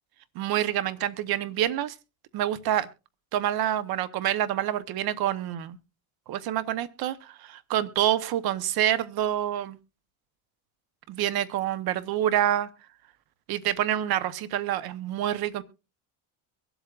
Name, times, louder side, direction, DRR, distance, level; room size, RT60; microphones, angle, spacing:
voice 1, 0.3-1.9 2.3-2.9 3.3-5.8 6.3-9.8 11.1-12.7 13.5-15.6, right 11 dB, 65° right, 15 dB, 1.0 m, -27 dB
23.0 x 8.0 x 2.5 m, 0.30 s
cardioid pair, 115°, 39 cm